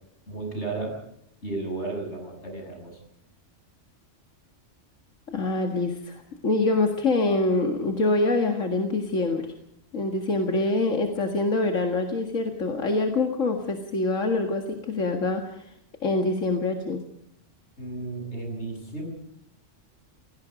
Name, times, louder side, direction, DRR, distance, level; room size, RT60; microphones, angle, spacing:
voice 1, 0.3-1.0 1.4-3.0 17.8-19.1, right 3 dB, 60° left, 2 dB, 7.7 m, -33 dB
voice 2, 5.3-9.4 9.9-15.7 16.0-17.0, left 2 dB, 90° left, 3 dB, 2.2 m, -25 dB
29.5 x 17.5 x 5.1 m, 0.74 s
omnidirectional pair, 1.3 m